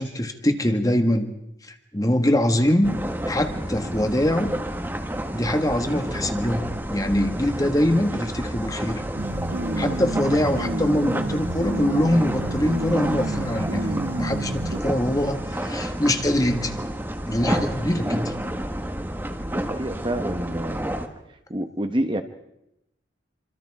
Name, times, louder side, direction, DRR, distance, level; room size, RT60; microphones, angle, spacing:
voice 1, 0.0-1.3 1.7-2.9 3.3-4.5 5.3-9.0 9.8-16.8 17.3-18.3, left 1 dB, 20° left, 6 dB, 1.6 m, -23 dB
sound 1, 2.8-21.1, right 1 dB, 10° right, 1.5 m, -30 dB
sound 2, 9.2-14.8, right 1 dB, 55° right, 1.2 m, -29 dB
voice 2, 19.4-20.8 21.5-22.2, right 1 dB, 25° right, 7 dB, 1.2 m, -28 dB
27.0 x 25.5 x 4.8 m, 0.83 s
head